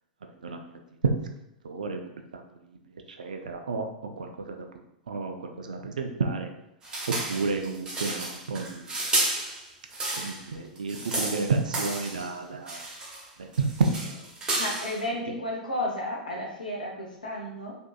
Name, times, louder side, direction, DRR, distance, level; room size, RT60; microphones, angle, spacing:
voice 1, 1.6-2.0 2.3-2.4 3.2-3.9 4.2-4.6 5.1-6.5 7.1-8.8 10.1-12.8 13.4-14.2, right 4 dB, 70° right, 5 dB, 0.4 m, -30 dB
sound 1, 6.8-10.5 10.8-12.3 12.7-13.3 13.5-15.0, right 2 dB, 15° right, 0.8 m, -32 dB
voice 2, 14.6-17.7, left 1 dB, 80° left, -3 dB, 0.6 m, -32 dB
3.5 x 2.7 x 2.3 m, 0.81 s
figure-of-eight pair, 95°, 4 cm